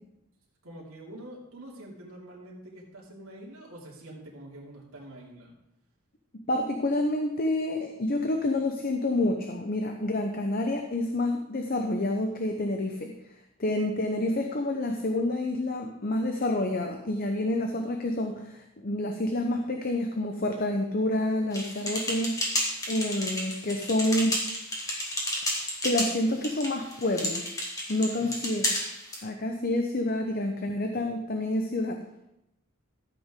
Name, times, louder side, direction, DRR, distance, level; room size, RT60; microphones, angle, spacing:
voice 1, 0.6-5.5 28.1-28.4, right 1 dB, 90° right, -3 dB, 2.8 m, -46 dB
voice 2, 6.3-13.1 13.6-24.4 25.5-27.4 27.9-28.7 29.2-32.0, left 1 dB, 45° left, 4 dB, 0.8 m, -28 dB
sound 1, 21.5-29.2, left 1 dB, 15° left, 2.0 m, -32 dB
13.0 x 8.2 x 3.8 m, 0.86 s
head